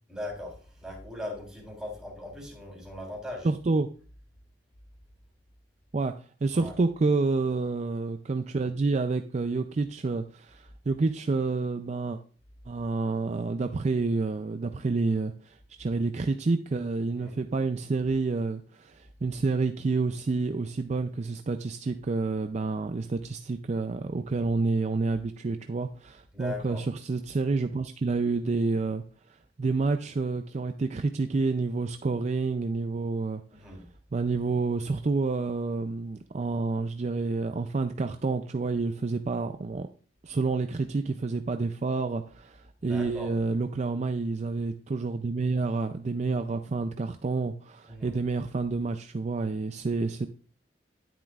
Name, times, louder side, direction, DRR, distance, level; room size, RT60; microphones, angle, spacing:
voice 1, 0.1-3.5 6.5-6.7 17.2-17.4 26.3-26.8 33.5-33.8 42.8-43.3 47.9-48.1, left 1 dB, 5° right, -3 dB, 3.4 m, -39 dB
voice 2, 3.4-3.9 5.9-6.1 6.4-12.2 12.7-29.0 29.6-33.4 34.1-39.9 40.2-50.3, right 3 dB, 40° right, 7 dB, 0.4 m, -29 dB
10.0 x 9.2 x 2.4 m, 0.40 s
head